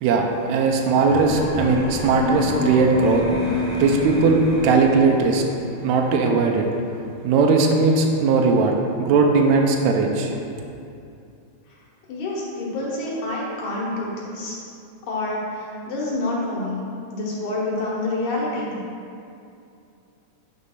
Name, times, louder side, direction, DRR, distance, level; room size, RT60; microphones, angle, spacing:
voice 1, 0.0-3.2 3.8-5.4 5.8-6.7 7.2-10.4, right 4 dB, 85° right, 2 dB, 2.0 m, -19 dB
sound 1, 1.0-5.6, left 2 dB, 50° left, 1.1 m, -28 dB
voice 2, 12.1-14.5 15.1-18.8, left 2 dB, 85° left, -5 dB, 3.0 m, -27 dB
9.5 x 3.2 x 5.6 m, 2.6 s
omnidirectional pair, 3.3 m